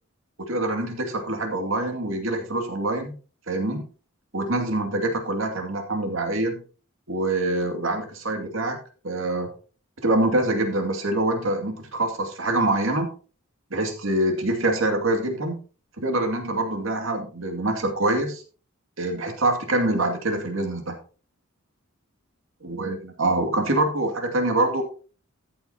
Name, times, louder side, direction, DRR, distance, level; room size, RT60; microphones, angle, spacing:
voice 1, 0.5-3.1 3.5-3.8 4.3-6.6 7.1-8.8 9.0-9.5 10.0-13.1 13.7-15.5 16.0-18.4 19.0-21.0 22.6-24.8, right 2 dB, 65° right, 4 dB, 2.4 m, -25 dB
14.0 x 8.2 x 2.8 m, 0.37 s
head